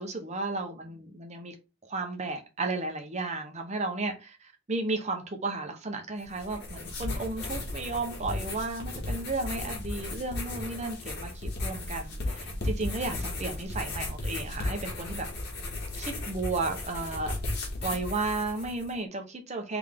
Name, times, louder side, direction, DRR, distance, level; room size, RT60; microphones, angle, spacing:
voice 1, 0.0-1.6 1.8-15.3 16.0-17.4 17.8-19.8, right 3 dB, 35° right, 0.9 m, -33 dB
sound 1, 6.2-18.9, left 2 dB, 55° left, 1.6 m, -35 dB
3.6 x 3.5 x 3.6 m
head